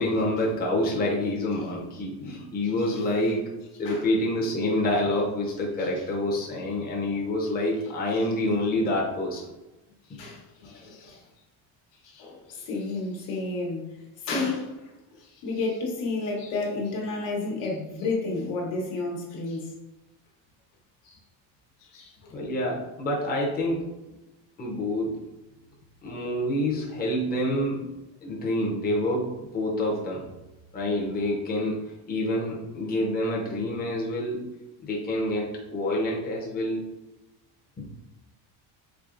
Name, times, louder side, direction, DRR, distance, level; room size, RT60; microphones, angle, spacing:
voice 1, 0.0-3.4 3.8-9.4 22.3-24.2 24.6-25.2 26.0-27.8 28.2-30.3 30.7-31.8 32.1-34.4 34.8-36.8 37.8-37.9, left 1 dB, 20° left, -3 dB, 0.7 m, -27 dB
voice 2, 10.1-11.2 12.0-13.9 14.2-19.7 21.0-21.2 21.8-22.3, left 3 dB, 75° left, -1 dB, 1.3 m, -31 dB
4.6 x 2.9 x 2.5 m, 1.0 s
cardioid pair, 145°, 43 cm